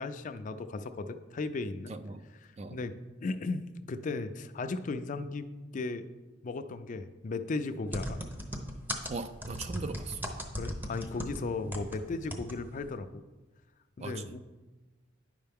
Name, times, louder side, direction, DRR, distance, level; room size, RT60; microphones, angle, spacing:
voice 1, 0.0-2.0 2.7-2.9 3.2-6.1 6.4-8.2 10.6-13.1 14.0-14.4, left 3 dB, 40° left, 10 dB, 0.4 m, -36 dB
voice 2, 1.9-2.2 2.6-2.8 9.1-10.2 14.0-14.4, right 3 dB, 35° right, 10 dB, 0.4 m, -39 dB
sound 1, 7.9-12.0 12.3-12.6 12.8-12.9, equal, 10° right, 0.7 m, -37 dB
9.8 x 5.5 x 3.5 m, 1.2 s
head